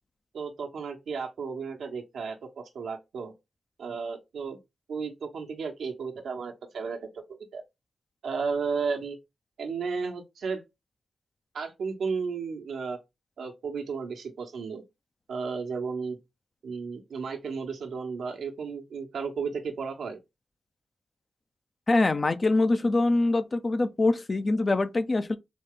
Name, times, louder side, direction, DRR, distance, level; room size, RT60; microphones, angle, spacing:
voice 1, 0.3-3.3 3.8-4.6 4.9-7.1 7.5-7.6 8.2-9.2 9.6-10.6 11.5-13.0 13.4-14.8 15.3-16.2 16.6-20.2, right 5 dB, 80° right, 1.0 m, -33 dB
voice 2, 21.9-25.4, left 2 dB, 40° left, 0.6 m, -24 dB
4.2 x 3.2 x 3.6 m
cardioid pair, 55°, 0 cm